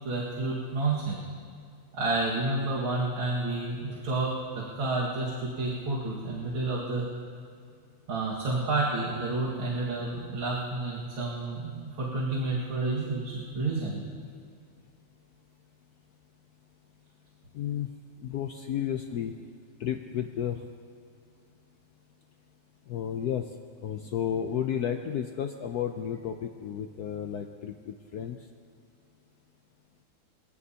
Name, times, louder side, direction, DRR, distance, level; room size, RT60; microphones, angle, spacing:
voice 1, 0.0-1.2 1.9-7.0 8.1-14.0, right 2 dB, 70° right, -5 dB, 2.6 m, -30 dB
voice 2, 17.5-17.9 18.2-19.3 19.8-20.6 22.9-23.5 23.8-28.5, left 9 dB, 80° left, 6 dB, 0.8 m, -32 dB
24.5 x 16.0 x 2.8 m, 2.3 s
omnidirectional pair, 2.3 m